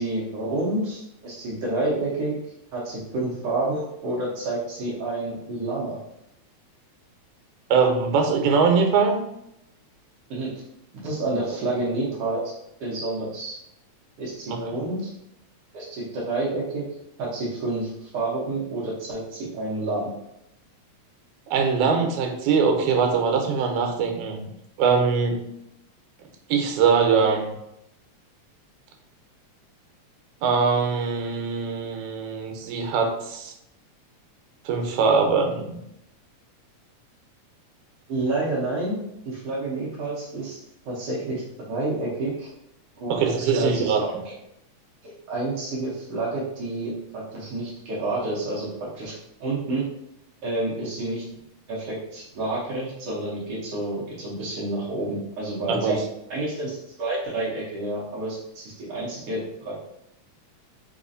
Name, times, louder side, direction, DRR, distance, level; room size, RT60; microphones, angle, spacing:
voice 1, 0.0-6.0 10.3-10.5 11.0-12.4 12.8-13.6 14.2-15.1 15.7-16.8 17.2-20.1 38.1-40.6 40.8-41.4 41.7-42.5 43.0-44.3 45.0-48.7 48.9-49.8 50.4-51.2 51.7-56.0 56.3-59.8, right 2 dB, 70° right, -5 dB, 1.5 m, -29 dB
voice 2, 7.7-9.2 14.5-14.6 21.5-24.4 24.8-25.4 26.5-27.5 30.4-33.5 34.7-35.8 43.1-44.0 55.7-55.9, right 5 dB, 90° right, 3 dB, 2.0 m, -22 dB
4.7 x 2.4 x 2.5 m, 0.81 s
omnidirectional pair, 3.3 m